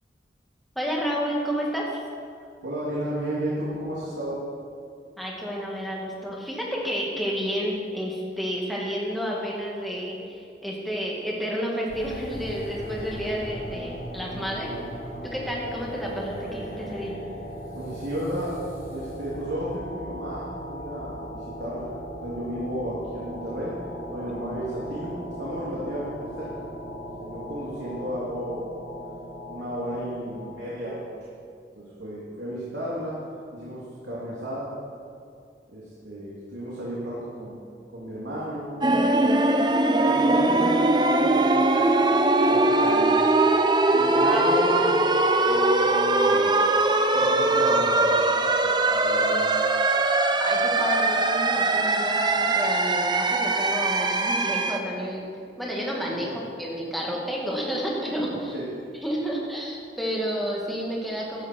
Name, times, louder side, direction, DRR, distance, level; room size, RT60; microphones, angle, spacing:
voice 1, 0.8-2.0 5.2-14.7 15.2-17.2 44.2-44.5 50.4-55.3 55.6-58.5 59.0-61.4, equal, ahead, -4 dB, 2.3 m, -30 dB
voice 2, 2.6-4.4 17.7-18.6 18.9-21.9 22.2-23.7 24.1-25.1 25.4-26.7 27.2-28.8 29.5-31.1 31.7-33.2 33.5-34.7 35.7-37.6 37.9-39.4 40.0-40.8 41.0-41.8 42.5-43.2 43.9-45.0 45.5-46.5 47.1-49.4 56.1-56.3 58.2-58.9, equal, 80° right, -7 dB, 3.0 m, -33 dB
sound 1, 11.9-31.1, equal, 50° left, 4.0 m, -38 dB
sound 2, 38.8-54.8, right 2 dB, 25° right, 0.7 m, -21 dB
16.0 x 12.0 x 4.6 m, 2.3 s
head